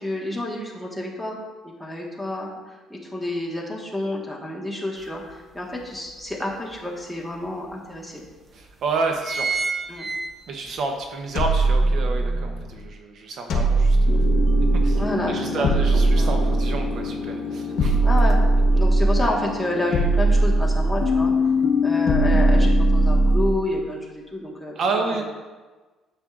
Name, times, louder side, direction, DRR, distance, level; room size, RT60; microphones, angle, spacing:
voice 1, 0.0-1.4 1.6-8.2 9.9-10.1 14.9-16.4 17.8-18.4 18.7-21.3 21.8-25.2, left 1 dB, ahead, -2 dB, 1.4 m, -29 dB
sound 1, 5.0-5.1 5.6-6.7 7.4-7.5 7.7-7.8 8.5-8.7 9.0-10.8 11.2-11.3, right 4 dB, 20° right, 0.7 m, -28 dB
voice 2, 8.5-9.5 10.5-14.2 14.8-18.0 24.8-25.2, right 4 dB, 55° right, 3 dB, 0.8 m, -29 dB
sound 2, 11.4-12.7 13.5-15.1 15.6-17.1 17.8-19.4 19.9-21.3 22.1-23.7, right 2 dB, 60° left, 1.2 m, -19 dB
sound 3, 14.1-23.5, left 5 dB, 45° left, 0.7 m, -27 dB
9.7 x 7.3 x 2.5 m, 1.3 s
cardioid pair, 130°, 0 cm